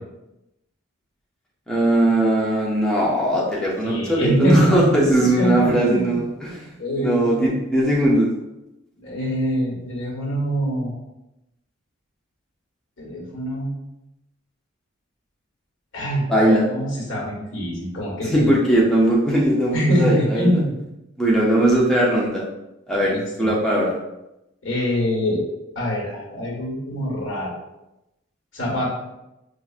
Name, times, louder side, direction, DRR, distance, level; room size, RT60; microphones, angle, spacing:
voice 1, 1.7-8.3 16.3-16.7 18.2-20.5 21.2-22.4 22.9-23.9, right 1 dB, 5° left, -5 dB, 0.4 m, -19 dB
voice 2, 3.8-6.2 6.8-7.6 9.0-10.9 13.0-13.7 15.9-18.6 19.7-20.7 23.0-23.5 24.6-25.4 25.7-27.6 28.5-28.9, equal, 80° left, -3 dB, 1.3 m, -24 dB
5.5 x 2.4 x 2.3 m, 0.92 s
head